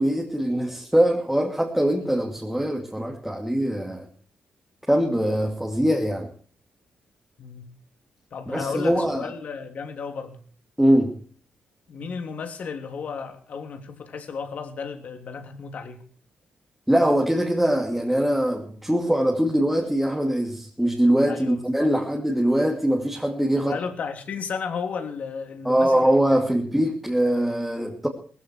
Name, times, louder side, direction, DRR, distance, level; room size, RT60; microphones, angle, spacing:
voice 1, 0.0-4.0 4.9-6.3 8.5-9.2 10.8-11.1 16.9-23.8 25.6-28.1, right 1 dB, 5° right, 2.6 m, -22 dB
voice 2, 7.4-7.7 8.3-10.4 11.9-16.0 21.3-22.0 23.6-26.5, left 5 dB, 55° left, 3.2 m, -34 dB
20.0 x 15.0 x 4.7 m
cardioid pair, 135°, 3 cm